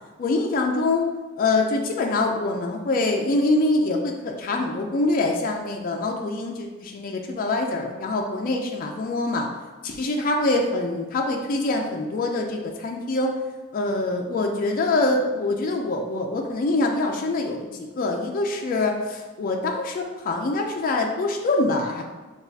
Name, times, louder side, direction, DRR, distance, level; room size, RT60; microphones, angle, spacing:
voice 1, 0.2-1.0 1.4-9.5 9.8-13.3 13.7-22.0, left 2 dB, 45° left, 1 dB, 0.4 m, -24 dB
5.9 x 2.3 x 2.7 m, 1.3 s
head